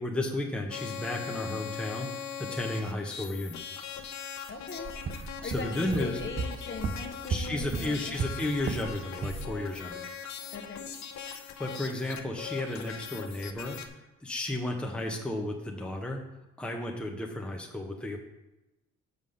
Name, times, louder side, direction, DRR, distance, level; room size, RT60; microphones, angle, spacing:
voice 1, 0.0-3.6 5.2-6.2 7.3-10.0 11.3-16.2 16.6-18.2, left 1 dB, 5° left, 1 dB, 0.9 m, -33 dB
sound 1, 0.7-13.9, left 8 dB, 65° left, 0.8 m, -41 dB
voice 2, 4.5-4.9 5.4-8.2 10.5-10.9, left 4 dB, 40° left, 3 dB, 1.1 m, -40 dB
sound 2, 4.8-8.9 9.2-9.5, right 4 dB, 30° right, 0.5 m, -34 dB
5.5 x 5.2 x 6.5 m, 0.99 s
cardioid pair, 90°, 30 cm